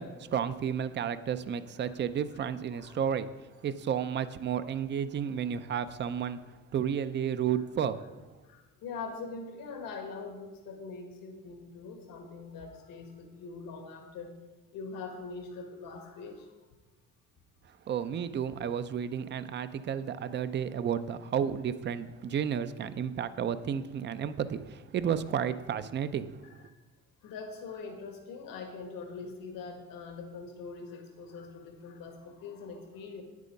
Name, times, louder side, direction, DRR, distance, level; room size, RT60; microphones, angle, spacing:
voice 1, 0.0-3.3 3.6-6.4 6.7-8.0 17.9-26.3, right 8 dB, 35° right, 13 dB, 0.5 m, -32 dB
voice 2, 2.7-3.2 7.5-7.6 8.4-14.3 14.7-16.6 26.7-26.8 27.2-33.2, left 4 dB, 85° left, 3 dB, 1.6 m, -43 dB
9.3 x 8.3 x 5.2 m, 1.2 s
cardioid pair, 125°, 33 cm